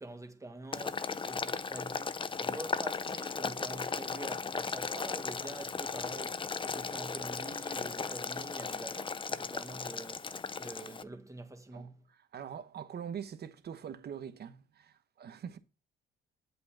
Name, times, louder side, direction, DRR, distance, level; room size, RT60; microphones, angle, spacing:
voice 1, 0.0-12.0, right 2 dB, 15° right, 1.6 m, -46 dB
Boiling, 0.7-11.0, left 5 dB, 25° left, 0.6 m, -36 dB
voice 2, 12.3-15.6, right 8 dB, 55° right, 1.1 m, -43 dB
8.0 x 5.3 x 6.0 m
cardioid pair, 90°, 20 cm